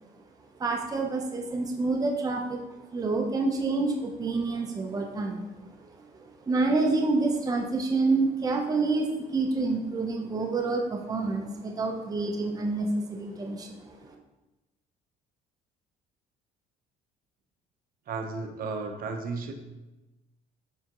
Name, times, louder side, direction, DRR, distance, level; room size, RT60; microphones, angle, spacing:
voice 1, 0.6-2.6 2.9-5.5 6.5-14.0, right 3 dB, 20° right, 2 dB, 0.7 m, -28 dB
voice 2, 18.1-19.5, right 4 dB, 60° right, 4 dB, 0.9 m, -34 dB
9.2 x 3.5 x 3.0 m, 1.0 s
cardioid pair, 110°, 17 cm